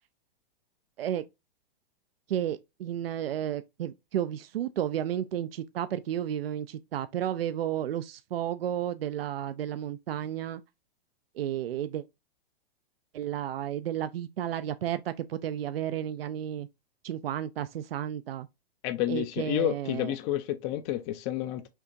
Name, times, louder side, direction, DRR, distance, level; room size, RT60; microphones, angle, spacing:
voice 1, 2.3-10.6 11.4-12.0 13.1-16.7 17.0-18.5 19.1-20.1, right 10 dB, 80° right, 0.4 m, -32 dB
voice 2, 18.8-21.7, left 13 dB, 30° left, 0.4 m, -30 dB
5.8 x 2.8 x 2.6 m
hypercardioid pair, 120°, 29 cm